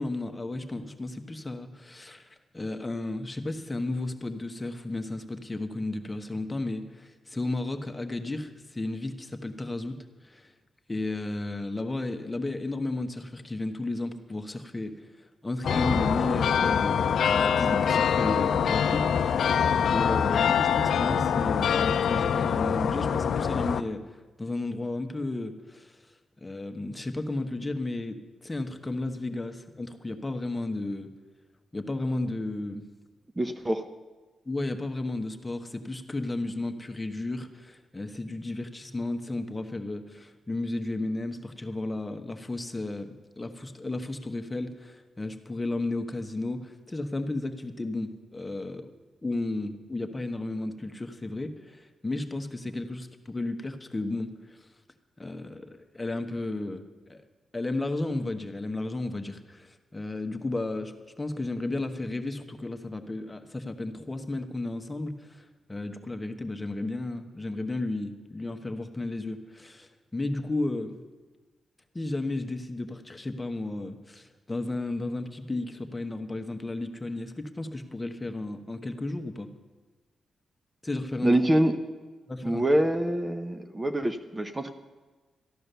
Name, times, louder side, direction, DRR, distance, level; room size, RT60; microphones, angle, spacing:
voice 1, 0.0-10.5 10.9-15.1 15.4-19.6 19.9-24.0 24.4-26.0 26.4-31.1 31.7-32.8 34.4-48.9 49.2-54.7 55.2-57.2 57.5-71.0 71.9-79.5 80.8-81.4 82.3-82.7, left 2 dB, 20° left, 6 dB, 1.2 m, -33 dB
sound 1, 15.6-23.8, left 7 dB, 75° left, 0.5 m, -24 dB
voice 2, 33.4-33.8 81.2-81.8 82.4-84.7, right 1 dB, 20° right, 6 dB, 0.8 m, -25 dB
14.0 x 11.0 x 6.8 m, 1.3 s
cardioid pair, 90°, 0 cm